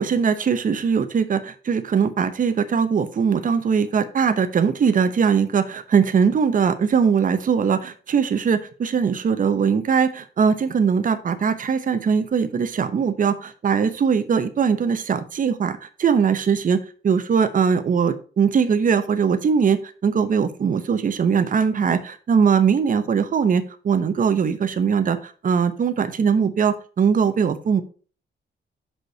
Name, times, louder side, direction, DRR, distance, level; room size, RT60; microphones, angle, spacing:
voice 1, 0.0-27.8, right 6 dB, 45° right, 10 dB, 0.9 m, -21 dB
6.1 x 5.4 x 5.6 m, 0.39 s
cardioid pair, 120°, 19 cm